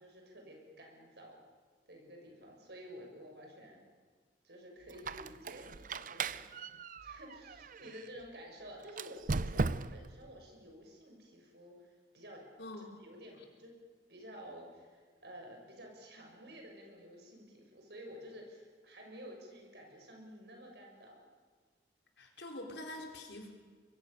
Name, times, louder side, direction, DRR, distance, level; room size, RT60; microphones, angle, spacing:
voice 1, 0.0-1.4 1.9-3.8 4.4-6.5 7.0-12.4 12.8-13.8 14.1-21.3, equal, 70° right, 1 dB, 6.6 m, -52 dB
Squeak, 4.9-8.1 8.9-10.2, right 3 dB, 50° right, 0.6 m, -38 dB
voice 2, 12.6-13.0 22.2-23.5, left 1 dB, 75° left, 2 dB, 4.1 m, -45 dB
24.5 x 22.5 x 6.9 m, 1.5 s
head